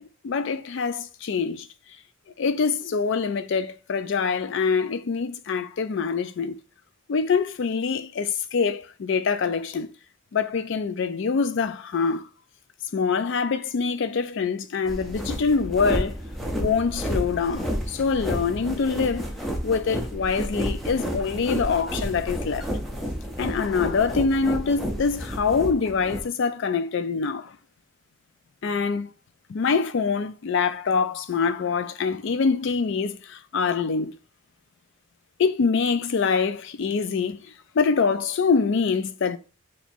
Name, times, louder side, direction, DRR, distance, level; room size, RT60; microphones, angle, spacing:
voice 1, 0.0-1.7 2.4-6.6 7.1-9.9 10.3-12.3 12.9-16.1 16.5-19.3 19.6-22.7 23.4-27.5 28.6-29.1 29.5-34.2 35.4-37.4 37.8-39.4, left 5 dB, 60° left, 0.4 m, -25 dB
sound 1, 14.9-26.2, equal, ahead, 0.5 m, -31 dB
3.0 x 2.6 x 4.3 m
head